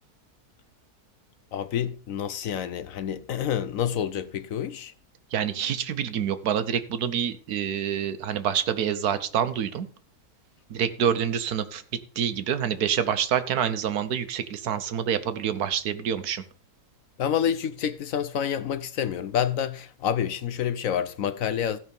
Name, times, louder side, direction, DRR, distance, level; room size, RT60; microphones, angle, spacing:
voice 1, 1.5-4.9 17.2-21.8, left 9 dB, 65° left, 1.0 m, -28 dB
voice 2, 5.3-9.9 10.7-11.8 12.2-16.4, right 8 dB, 75° right, 1.4 m, -27 dB
15.5 x 5.7 x 5.3 m
omnidirectional pair, 1.6 m